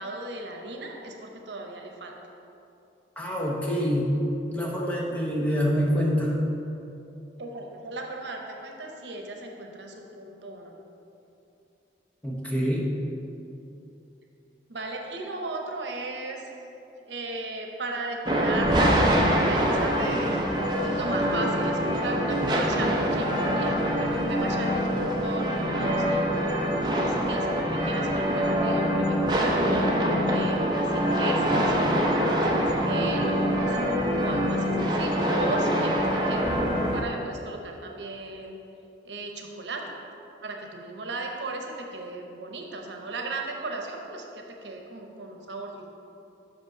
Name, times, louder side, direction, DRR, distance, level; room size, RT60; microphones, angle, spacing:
voice 1, 0.0-2.2 7.4-10.8 14.7-16.6 17.0-20.5 20.8-26.3 26.8-29.9 30.3-33.8 34.2-38.6 39.0-39.9 40.4-45.9, right 2 dB, 80° right, 2 dB, 0.9 m, -36 dB
voice 2, 3.2-4.1 4.5-6.3 12.2-12.9, equal, 10° left, -4 dB, 0.9 m, -26 dB
sound 1, 18.3-37.0, equal, 25° right, 0.6 m, -24 dB
6.0 x 5.3 x 5.9 m, 2.8 s
head